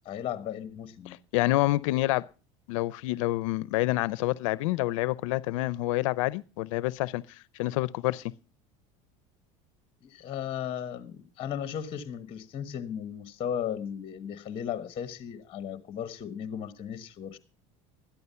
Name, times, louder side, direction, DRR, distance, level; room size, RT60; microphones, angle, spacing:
voice 1, 0.0-1.2 10.0-17.4, left 9 dB, 35° left, 1.2 m, -36 dB
voice 2, 1.1-2.2 2.7-7.2 7.6-8.3, left 18 dB, 85° left, 0.6 m, -27 dB
13.0 x 11.0 x 5.6 m
supercardioid pair, 125°, 16 cm